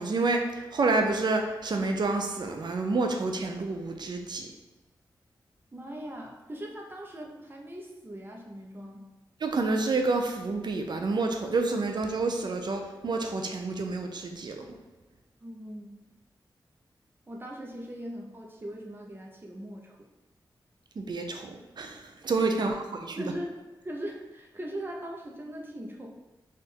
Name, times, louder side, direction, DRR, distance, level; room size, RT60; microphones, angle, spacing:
voice 1, 0.0-4.5 9.4-14.7 21.0-22.7 23.0-23.2, right 3 dB, 60° right, 4 dB, 0.5 m, -28 dB
voice 2, 5.7-9.0 15.4-16.0 17.3-20.0 22.5-22.7 23.2-26.1, equal, 25° right, -1 dB, 0.8 m, -40 dB
3.6 x 2.5 x 4.3 m, 1.1 s
wide cardioid pair, 80°, 8 cm